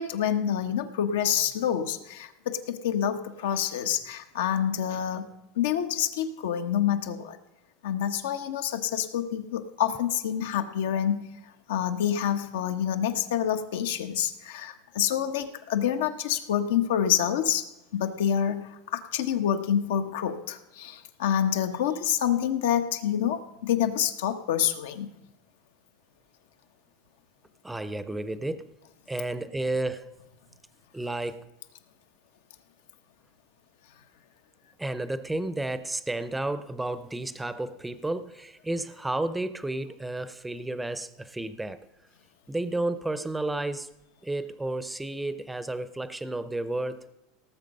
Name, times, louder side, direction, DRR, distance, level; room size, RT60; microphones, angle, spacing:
voice 1, 0.0-5.3 5.5-7.4 7.8-11.3 11.7-17.7 17.9-25.1, left 9 dB, 85° left, 1.2 m, -27 dB
voice 2, 27.6-28.7 29.1-30.2 30.9-31.5 34.8-41.9 42.5-43.9 44.2-47.1, right 2 dB, 5° right, 0.6 m, -32 dB
18.0 x 7.0 x 5.4 m
supercardioid pair, 145°, 0 cm